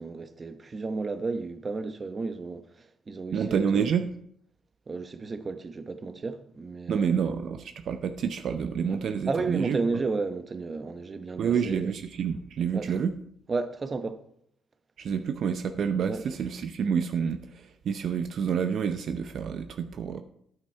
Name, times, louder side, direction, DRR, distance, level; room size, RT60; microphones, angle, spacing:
voice 1, 0.0-3.9 4.9-7.3 9.3-11.9 12.7-12.9 13.5-14.2 16.1-16.2, right 3 dB, 35° right, 0.8 m, -33 dB
voice 2, 3.3-4.1 6.9-9.8 11.4-13.2 15.0-20.2, right 7 dB, 60° right, 0.6 m, -28 dB
9.1 x 7.9 x 4.4 m
cardioid pair, 90°, 0 cm